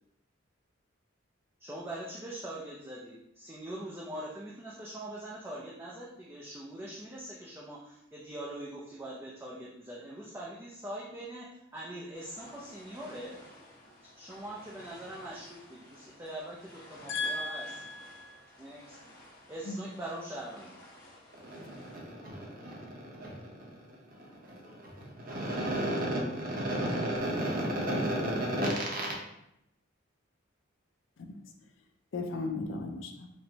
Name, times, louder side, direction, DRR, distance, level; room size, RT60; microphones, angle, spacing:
voice 1, 1.6-13.4 14.2-17.7 18.6-19.0 19.5-20.7, right 1 dB, 10° right, -5 dB, 0.3 m, -42 dB
sound 1, 12.1-22.0, left 1 dB, 45° left, 0.8 m, -54 dB
voice 2, 17.1-18.4 19.7-19.8 31.2-31.4 32.1-33.3, left 3 dB, 65° left, 4 dB, 0.4 m, -36 dB
voice 3, 21.3-29.2, right 1 dB, 45° right, -3 dB, 0.8 m, -34 dB
4.2 x 2.0 x 2.7 m, 0.83 s
head